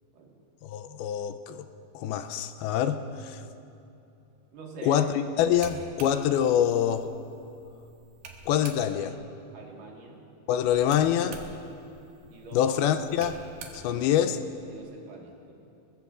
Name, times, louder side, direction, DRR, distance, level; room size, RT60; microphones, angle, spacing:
voice 1, 0.6-1.7 1.9-3.4 4.8-5.1 5.4-7.1 8.5-9.2 10.5-11.4 12.5-13.4 13.7-14.4, left 10 dB, 85° left, 8 dB, 2.5 m, -25 dB
voice 2, 4.5-5.0 9.0-9.2 9.5-10.2 12.3-12.7 13.7-14.1 14.7-15.5, right 4 dB, 65° right, -1 dB, 3.1 m, -45 dB
sound 1, 5.4-9.2 10.6-14.8, right 4 dB, 80° right, 3.2 m, -48 dB
22.5 x 21.5 x 2.5 m, 2.8 s
omnidirectional pair, 4.5 m